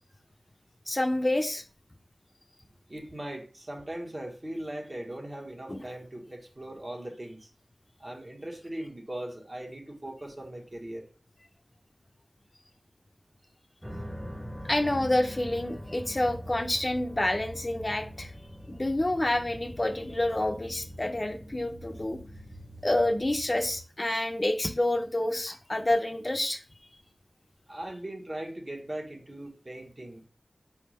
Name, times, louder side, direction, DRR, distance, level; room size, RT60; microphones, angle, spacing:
voice 1, 0.9-1.6 5.7-5.8 14.6-18.3 18.7-22.2 22.8-26.6, left 1 dB, 30° left, 6 dB, 0.5 m, -28 dB
voice 2, 2.9-7.5 8.0-11.1 27.7-30.3, right 1 dB, 40° right, 1 dB, 1.2 m, -39 dB
sound 1, 13.8-23.8, equal, 5° right, 0.8 m, -43 dB
4.9 x 3.4 x 3.1 m, 0.37 s
wide cardioid pair, 50°, 0 cm